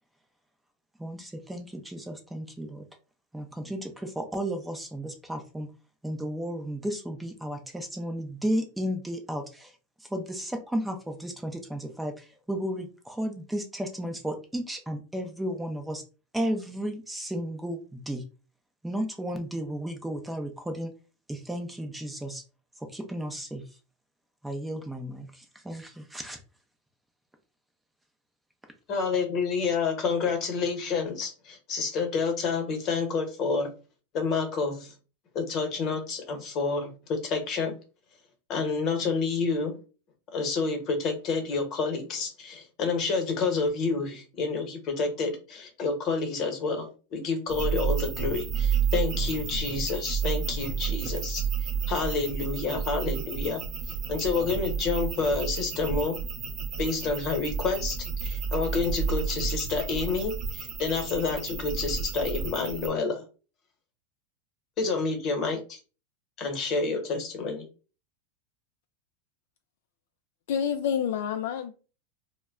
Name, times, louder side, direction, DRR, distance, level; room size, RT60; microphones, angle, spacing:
voice 1, 1.0-2.9 3.3-5.7 6.0-9.7 10.1-16.0 16.3-18.2 18.8-20.9 21.3-22.4 22.8-23.6 24.4-26.4, equal, 5° right, 0.5 m, -33 dB
voice 2, 28.9-33.7 34.1-34.9 35.3-37.8 38.5-39.7 40.3-46.9 47.1-51.4 51.9-53.6 54.1-56.1 56.8-63.2 64.8-65.8 66.4-67.6, left 4 dB, 45° left, 1.0 m, -29 dB
sound 1, 47.5-62.9, right 7 dB, 40° right, 0.7 m, -31 dB
voice 3, 70.5-71.7, left 8 dB, 70° left, 0.3 m, -28 dB
2.1 x 2.1 x 3.5 m
hypercardioid pair, 105°, 0 cm